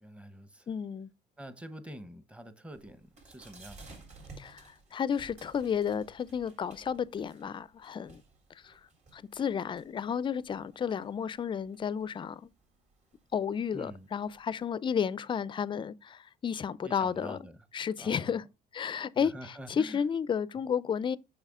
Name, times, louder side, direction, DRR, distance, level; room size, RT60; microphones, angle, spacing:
voice 1, 0.0-0.7 1.4-4.0 13.7-14.1 16.8-17.7 18.0-18.4 19.1-20.0 20.6-20.7, equal, 5° right, 0.9 m, -46 dB
voice 2, 0.7-1.1 4.4-8.2 8.6-8.7 9.1-12.5 13.3-17.4 17.7-18.4 18.7-19.3 19.7-21.2, left 7 dB, 30° left, 0.4 m, -32 dB
sound 1, 2.7-14.6, right 3 dB, 40° right, 3.6 m, -56 dB
6.5 x 5.9 x 3.6 m
cardioid pair, 110°, 17 cm